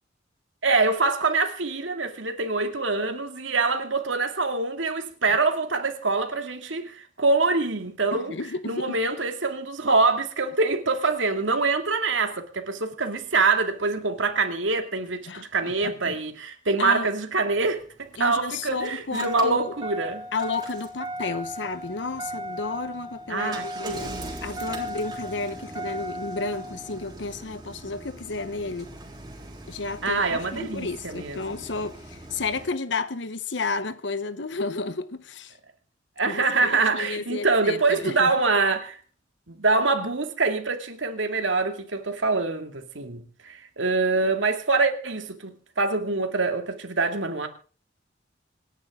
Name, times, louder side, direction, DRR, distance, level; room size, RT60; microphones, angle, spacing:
voice 1, 0.6-8.3 8.7-20.3 23.3-24.3 30.0-31.6 36.2-39.0 39.5-47.5, right 3 dB, 90° right, 2.3 m, -25 dB
voice 2, 8.1-9.0 15.3-16.2 16.8-17.1 18.2-19.7 20.3-24.1 24.4-28.9 29.7-35.6 36.2-38.3, left 3 dB, 70° left, 1.0 m, -32 dB
Engine starting, 17.5-32.7, right 1 dB, 25° right, 3.4 m, -38 dB
26.5 x 10.5 x 3.7 m
head